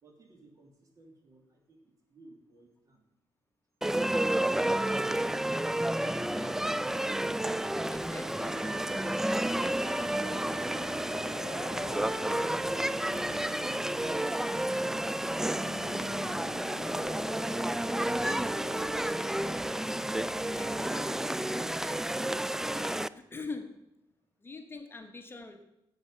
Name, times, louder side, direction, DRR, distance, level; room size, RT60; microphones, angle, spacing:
voice 1, 0.0-3.0, right 2 dB, 45° right, 2 dB, 3.0 m, -58 dB
sound 1, 3.8-23.1, right 1 dB, 5° right, 0.3 m, -31 dB
voice 2, 6.1-6.8 7.7-8.6 11.1-11.5 20.4-22.0 22.6-23.8 24.4-25.6, left 3 dB, 30° left, 5 dB, 1.2 m, -45 dB
Piano, 7.4-21.8, left 9 dB, 60° left, 0.6 m, -50 dB
sound 2, 8.4-13.5, right 3 dB, 65° right, 2.4 m, -51 dB
11.5 x 7.9 x 5.7 m, 0.88 s
cardioid pair, 100°, 8 cm